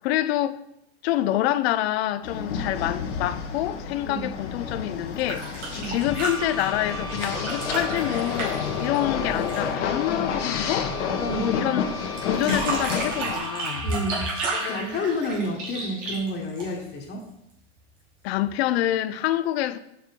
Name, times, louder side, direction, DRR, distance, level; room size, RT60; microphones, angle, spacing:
voice 1, 0.0-0.6 1.0-10.9 11.4-11.9 12.3-13.9 14.5-14.8 18.2-19.8, left 13 dB, 60° left, 0.5 m, -27 dB
sound 1, 2.2-13.4, left 6 dB, 80° left, 0.9 m, -30 dB
sound 2, 5.1-9.8 12.2-17.0 18.5-18.6, right 3 dB, 80° right, 2.4 m, -32 dB
Wind instrument woodwind instrument, 6.0-14.8, equal, 15° left, 0.6 m, -40 dB
voice 2, 11.2-11.8 12.4-12.5 13.8-14.3 14.7-17.3, left 1 dB, 30° left, 1.2 m, -30 dB
5.3 x 4.6 x 4.5 m
hypercardioid pair, 100°, 36 cm